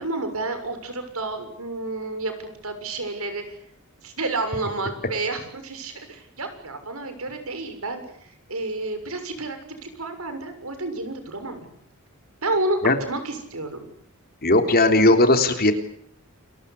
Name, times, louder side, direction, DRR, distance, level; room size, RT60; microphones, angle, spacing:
voice 1, 0.0-3.4 4.0-11.6 12.4-13.9, right 2 dB, 85° right, 8 dB, 6.8 m, -30 dB
voice 2, 14.4-15.7, left 2 dB, 45° left, 6 dB, 3.5 m, -17 dB
29.5 x 23.0 x 8.5 m, 0.68 s
head